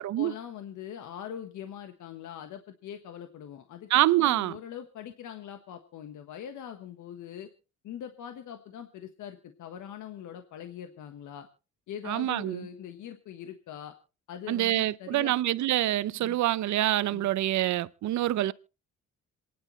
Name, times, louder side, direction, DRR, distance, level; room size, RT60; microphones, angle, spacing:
voice 1, 0.0-3.9 4.2-7.5 7.8-11.5 11.9-13.9 14.3-15.3 16.2-16.4 17.1-17.3, left 9 dB, 80° left, 1.4 m, -42 dB
voice 2, 3.9-4.6 12.1-12.6 14.5-18.5, right 14 dB, 70° right, 0.7 m, -26 dB
27.0 x 10.5 x 3.2 m
cardioid pair, 90°, 30 cm